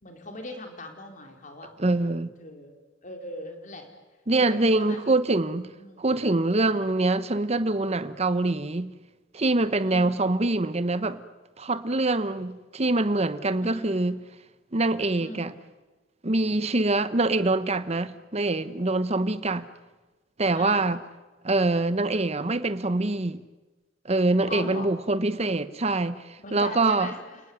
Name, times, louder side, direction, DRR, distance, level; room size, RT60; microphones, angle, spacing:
voice 1, 0.0-1.7 2.4-2.7 3.0-3.9 4.4-5.1 5.8-6.0 9.8-10.1 13.6-13.9 15.2-15.5 20.5-20.8 24.5-24.9 26.4-27.4, left 1 dB, 45° left, 4.5 m, -39 dB
voice 2, 1.8-2.3 4.3-5.7 6.0-8.9 9.3-11.2 11.6-14.2 14.7-15.5 16.2-19.7 20.4-21.0 21.4-23.4 24.0-27.1, right 2 dB, 35° right, 1.0 m, -24 dB
29.5 x 19.0 x 9.6 m
head